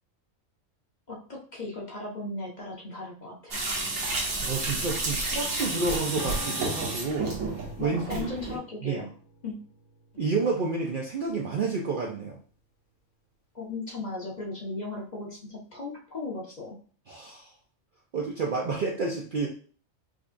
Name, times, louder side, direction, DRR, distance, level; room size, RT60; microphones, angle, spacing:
voice 1, 1.1-3.6 7.8-9.1 9.4-9.6 10.1-10.2 13.5-16.8, left 3 dB, 40° left, -3 dB, 0.8 m, -37 dB
sound 1, 3.5-8.6, right 2 dB, 75° right, 1.4 m, -31 dB
voice 2, 4.4-7.3 7.8-8.3 8.8-9.1 10.2-12.4 17.1-17.5 18.1-19.5, right 4 dB, 55° right, -1 dB, 0.6 m, -30 dB
Acoustic guitar / Strum, 6.2-10.9, left 3 dB, 70° left, 1.0 m, -44 dB
4.9 x 2.3 x 2.5 m, 0.43 s
omnidirectional pair, 1.4 m